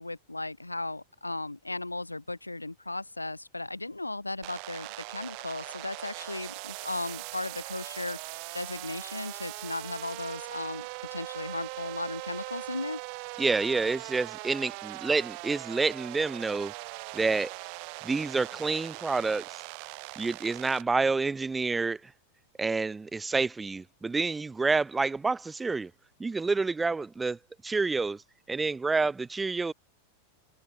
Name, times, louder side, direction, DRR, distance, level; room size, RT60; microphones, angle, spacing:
voice 1, 0.0-13.0, left 2 dB, 85° left, 0.9 m, -36 dB
sound 1, 4.4-20.8, right 40 dB or more, 45° right, 2.6 m, -41 dB
voice 2, 13.4-16.7 17.1-17.5 18.0-19.6 20.2-22.0 22.6-25.9 26.2-27.4 27.6-28.2 28.5-29.7, right 4 dB, 10° right, 0.4 m, -28 dB
figure-of-eight pair, 90°, 0 cm